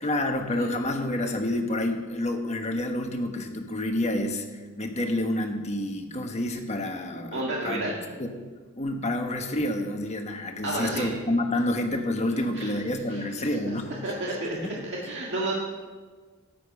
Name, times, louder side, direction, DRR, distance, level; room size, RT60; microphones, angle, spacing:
voice 1, 0.0-7.8 8.2-8.5 8.8-13.9 14.5-14.7, left 1 dB, 30° left, 4 dB, 1.3 m, -29 dB
voice 2, 7.3-8.0 10.6-11.1 12.3-12.7 13.1-13.2 13.6-14.6 14.8-15.5, right 2 dB, 60° right, -3 dB, 1.8 m, -31 dB
13.0 x 10.5 x 5.2 m, 1.5 s
head